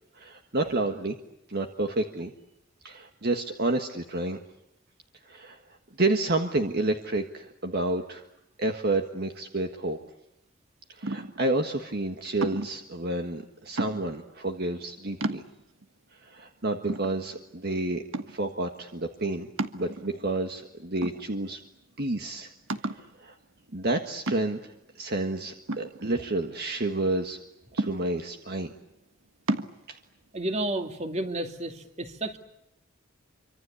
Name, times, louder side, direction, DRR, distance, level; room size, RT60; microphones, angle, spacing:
voice 1, 0.1-1.2 1.5-2.3 2.8-4.4 5.3-5.6 6.0-8.2 8.6-10.0 10.9-15.4 16.2-19.5 19.7-21.6 22.0-22.5 22.8-23.3 23.7-27.4 27.7-28.7 29.9-30.0, right 2 dB, 50° right, 5 dB, 1.6 m, -30 dB
sound 1, 11.0-11.5 12.4-12.8 13.8-14.3 14.8-14.9 15.2-15.8 16.4-16.5 16.9-17.6 18.1-18.5 19.6-20.3 21.0-21.7 22.0-22.1 22.7-23.1 24.3-24.7 25.7-26.6 27.8-28.4 29.5-29.7, right 2 dB, 75° right, 1.6 m, -32 dB
voice 2, 30.3-32.4, right 1 dB, 35° right, 6 dB, 2.5 m, -31 dB
26.5 x 25.5 x 8.4 m, 0.83 s
head